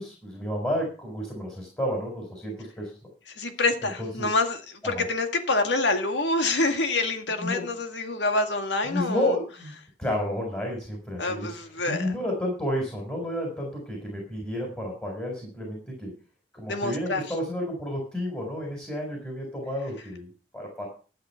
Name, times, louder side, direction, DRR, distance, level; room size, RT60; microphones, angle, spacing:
voice 1, 0.0-2.9 3.8-4.4 4.8-5.0 7.4-7.7 8.8-9.7 10.0-11.6 11.9-16.1 16.5-20.9, left 1 dB, 10° left, 4.0 m, -31 dB
voice 2, 3.4-9.4 11.2-12.1 16.7-17.2, left 2 dB, 75° left, 1.9 m, -26 dB
12.0 x 8.1 x 5.6 m
head